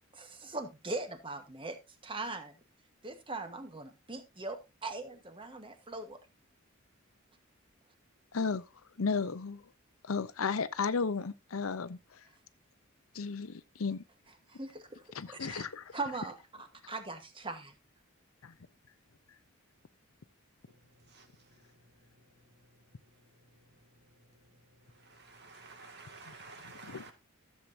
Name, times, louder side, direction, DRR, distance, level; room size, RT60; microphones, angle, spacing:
voice 1, 0.2-1.8 2.0-2.5 3.0-6.2 14.5-15.1 15.4-15.7 15.9-17.7, right 3 dB, 25° right, 1.3 m, -40 dB
voice 2, 8.3-8.7 9.0-9.6 10.0-12.2 13.1-14.0 15.1-16.0 18.4-18.5 26.3-26.4 26.6-27.1, left 5 dB, 75° left, 0.7 m, -34 dB
voice 3, 25.1-27.1, right 3 dB, 50° right, 2.2 m, -51 dB
14.0 x 7.5 x 2.7 m
head